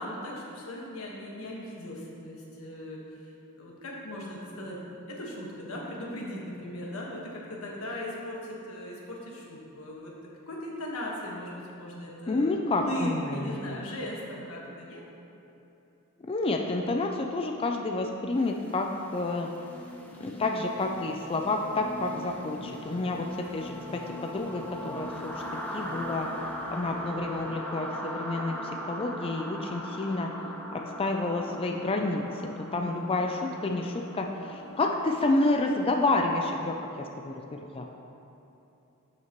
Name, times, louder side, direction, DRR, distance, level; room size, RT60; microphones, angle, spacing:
voice 1, 0.0-3.3 3.6-4.8 5.1-10.1 10.5-15.0 32.7-33.2, left 1 dB, 90° left, -3 dB, 1.5 m, -38 dB
voice 2, 12.3-13.8 16.2-19.5 20.2-25.3 25.7-26.3 26.7-30.3 30.7-37.3 37.6-37.8, left 2 dB, 25° left, 2 dB, 0.4 m, -29 dB
sound 1, 18.5-36.2, equal, 10° left, 0.9 m, -41 dB
sound 2, 19.4-34.9, left 1 dB, 45° left, 0.9 m, -46 dB
12.5 x 5.8 x 3.0 m, 2.9 s
head